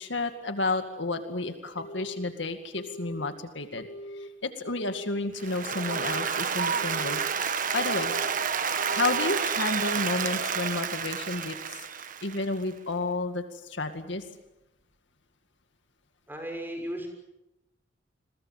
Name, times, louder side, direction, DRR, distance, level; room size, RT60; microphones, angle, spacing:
voice 1, 0.0-3.9 4.2-7.2 7.7-8.1 8.9-11.9 12.2-14.2, left 2 dB, 70° left, 7 dB, 2.2 m, -31 dB
Telephone, 1.8-2.3 2.8-3.3 3.8-4.3 4.8-5.3 5.8-6.3 6.8-7.3 7.8-8.3 8.8-9.3, equal, 85° left, 2.4 m, -41 dB
Applause, 5.4-12.6, right 6 dB, 45° right, 1.4 m, -30 dB
voice 2, 16.3-17.1, equal, 10° right, 4 dB, 6.4 m, -35 dB
30.0 x 22.5 x 7.5 m, 0.93 s
head